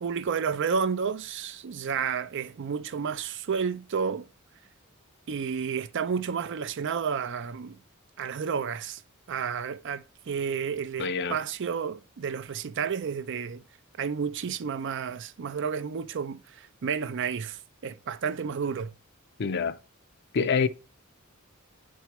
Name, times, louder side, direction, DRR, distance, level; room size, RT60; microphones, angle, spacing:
voice 1, 0.0-4.3 5.3-7.8 8.2-9.0 9.3-13.6 14.0-18.9, right 6 dB, 60° right, 0.4 m, -31 dB
voice 2, 11.0-11.4 19.4-19.8 20.3-20.7, left 5 dB, 55° left, 0.5 m, -26 dB
9.2 x 4.6 x 3.0 m
head